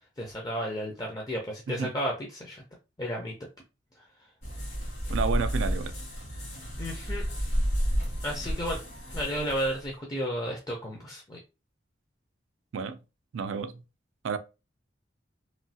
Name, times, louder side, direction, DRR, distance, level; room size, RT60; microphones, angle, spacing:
voice 1, 0.2-2.6 3.0-3.3 6.8-7.2 8.2-8.8 9.1-11.4, equal, 20° left, 0.5 m, -32 dB
sound 1, 4.4-9.9, equal, 60° left, 1.8 m, -31 dB
voice 2, 5.1-5.9 12.7-13.0 13.3-13.8 14.2-14.4, right 5 dB, 90° right, 0.4 m, -31 dB
3.1 x 2.2 x 2.7 m
head